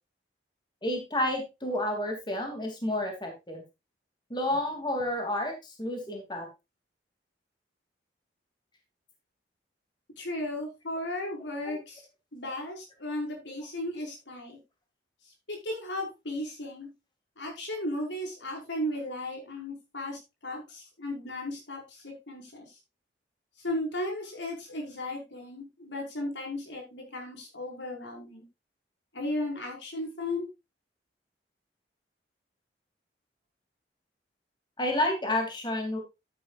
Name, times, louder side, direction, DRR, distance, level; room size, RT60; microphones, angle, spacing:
voice 1, 0.8-3.6 4.3-6.5 11.6-11.8 34.8-36.0, left 1 dB, 25° left, 3 dB, 3.0 m, -30 dB
voice 2, 10.2-12.0 12.3-14.6 15.5-16.9 17.4-22.7 23.6-28.4 29.1-30.5, left 1 dB, 85° left, 1 dB, 5.9 m, -35 dB
13.5 x 9.1 x 2.6 m, 0.25 s
head